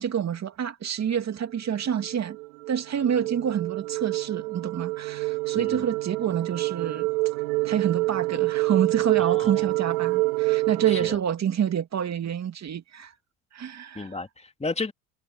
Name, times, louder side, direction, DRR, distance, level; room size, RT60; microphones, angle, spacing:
voice 1, 0.0-2.4 2.7-7.1 7.6-13.1 13.5-14.1, right 8 dB, 45° right, 2.6 m, -28 dB
sound 1, 1.5-11.2, right 23 dB, 80° right, 0.6 m, -27 dB
voice 2, 9.2-9.6 10.9-11.2 13.9-14.9, left 3 dB, 15° left, 2.6 m, -33 dB
hypercardioid pair, 70°, 38 cm